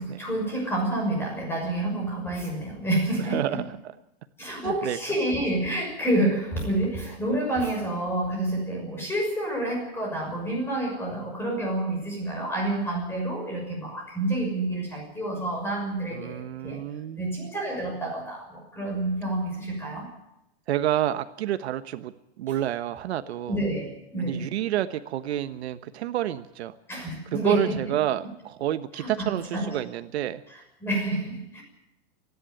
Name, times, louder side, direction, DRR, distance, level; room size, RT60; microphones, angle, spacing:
voice 1, 0.0-3.6 4.4-16.9 17.2-20.1 23.5-24.5 26.9-27.8 29.0-29.8 30.5-31.6, right 1 dB, 5° left, 0 dB, 6.2 m, -29 dB
voice 2, 3.3-3.6 4.6-5.0 16.1-17.4 20.7-22.1 22.4-23.6 24.2-26.7 27.3-30.4, right 12 dB, 80° right, 11 dB, 1.2 m, -29 dB
28.5 x 11.0 x 9.2 m, 0.88 s
supercardioid pair, 175°, 32 cm